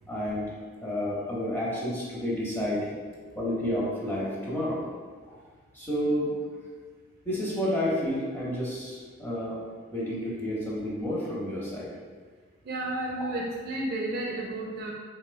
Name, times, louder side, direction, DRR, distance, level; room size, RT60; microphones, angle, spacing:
voice 1, 0.1-0.5 0.8-2.9 3.3-4.8 5.3-5.4 5.7-6.3 7.2-9.6 9.9-11.9 13.1-13.2, equal, 10° left, -6 dB, 0.6 m, -30 dB
voice 2, 12.6-14.9, right 2 dB, 45° right, -2 dB, 0.4 m, -32 dB
3.4 x 2.9 x 2.2 m, 1.5 s
head